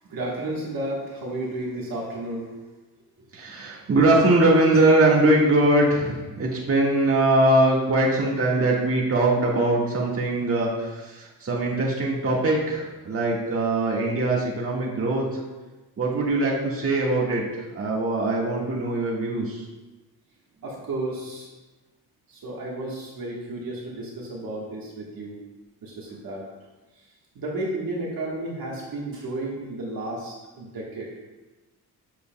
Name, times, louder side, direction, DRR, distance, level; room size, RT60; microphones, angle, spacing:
voice 1, 0.1-2.5 20.6-21.5 22.3-25.4 25.8-26.5 27.3-31.1, right 1 dB, 55° right, -3 dB, 1.5 m, -32 dB
voice 2, 3.3-15.4 16.0-19.6, right 2 dB, 35° right, -4 dB, 1.7 m, -22 dB
8.2 x 6.8 x 2.3 m, 1.1 s
cardioid pair, 115°, 40 cm